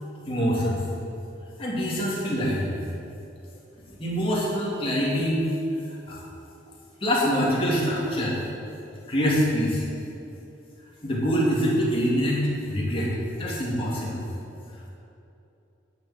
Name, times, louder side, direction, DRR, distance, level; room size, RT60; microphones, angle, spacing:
voice 1, 0.3-0.8 1.6-2.8 4.0-5.5 6.1-6.2 7.0-8.4 9.1-9.8 11.0-14.3, equal, 30° left, -5 dB, 2.6 m, -25 dB
11.0 x 6.7 x 7.7 m, 2.8 s
head